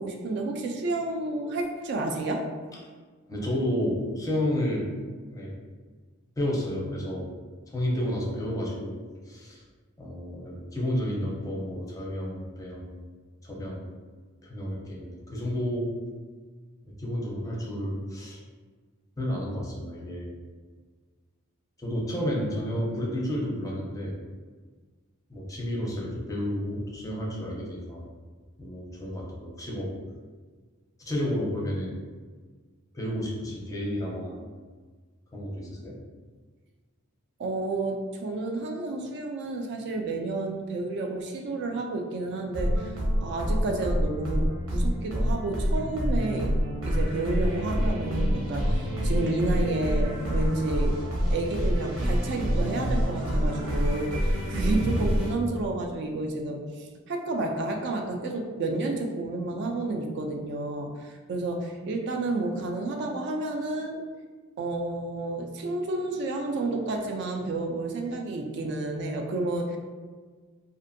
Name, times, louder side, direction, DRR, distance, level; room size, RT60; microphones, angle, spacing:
voice 1, 0.0-2.5 37.4-42.9 43.2-46.5 46.8-51.0 51.3-64.0 64.6-69.8, right 2 dB, 55° right, 3 dB, 0.3 m, -30 dB
voice 2, 3.3-4.9 5.3-5.5 6.4-7.3 7.7-9.0 9.3-9.6 10.0-13.0 13.4-13.9 14.4-15.9 16.8-18.4 19.2-20.3 21.8-24.1 25.3-28.0 28.6-29.9 31.0-32.0 32.9-34.4 35.3-36.0, equal, 15° left, -3 dB, 0.5 m, -31 dB
sound 1, 42.5-55.3, equal, 80° right, 0.8 m, -27 dB
2.5 x 2.5 x 2.5 m, 1.5 s
head